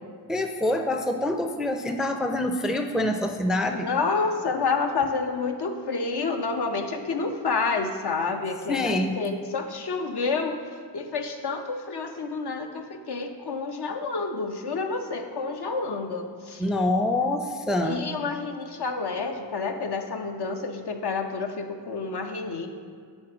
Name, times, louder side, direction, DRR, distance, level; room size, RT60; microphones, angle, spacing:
voice 1, 0.3-3.9 8.7-9.2 16.6-18.0, left 1 dB, ahead, 5 dB, 0.4 m, -26 dB
voice 2, 3.7-10.6 10.9-16.6 17.8-22.7, left 4 dB, 65° left, 4 dB, 0.7 m, -29 dB
6.3 x 4.3 x 4.8 m, 2.1 s
cardioid pair, 55°, 43 cm